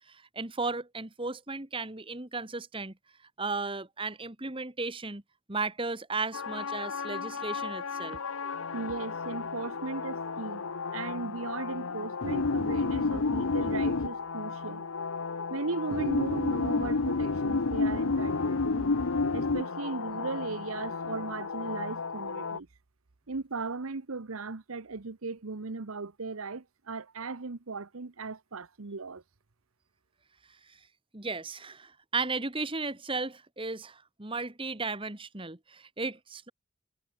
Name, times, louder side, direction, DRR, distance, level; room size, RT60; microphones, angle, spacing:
voice 1, 0.1-2.9 3.4-5.2 5.5-8.2 31.1-36.5, right 3 dB, 25° right, 1.7 m, -35 dB
sound 1, 6.3-22.6, left 4 dB, 80° left, 0.9 m, -31 dB
voice 2, 8.7-10.6 10.9-14.8 15.5-18.9 19.3-22.7 23.3-29.2, right 3 dB, 85° right, 1.0 m, -37 dB
head